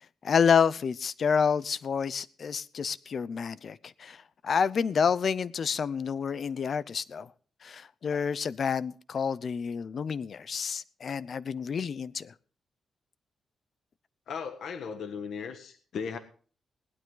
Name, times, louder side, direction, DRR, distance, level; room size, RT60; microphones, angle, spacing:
voice 1, 0.2-7.3 7.6-12.3, left 6 dB, 45° left, 0.7 m, -29 dB
voice 2, 14.3-16.2, left 6 dB, 65° left, 1.5 m, -37 dB
19.5 x 12.0 x 3.9 m
wide cardioid pair, 155°, 0 cm